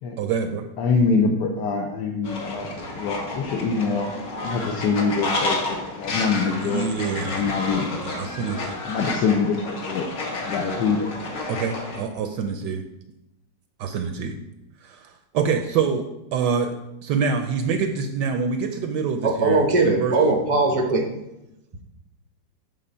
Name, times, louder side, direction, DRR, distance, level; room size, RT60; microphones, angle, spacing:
voice 1, 0.2-0.7 6.6-7.5 8.0-8.7 11.5-12.8 13.8-14.4 14.8-20.1, right 6 dB, 75° right, 6 dB, 1.1 m, -26 dB
voice 2, 0.8-2.7 3.0-4.1 4.4-6.8 7.2-8.3 8.8-10.0 10.4-11.1, left 4 dB, 70° left, 1 dB, 1.3 m, -24 dB
Fowl, 2.2-12.0, left 2 dB, 50° left, 1.5 m, -31 dB
voice 3, 19.2-21.1, right 3 dB, 40° right, 2 dB, 0.4 m, -20 dB
7.8 x 3.8 x 5.5 m, 0.91 s
omnidirectional pair, 2.1 m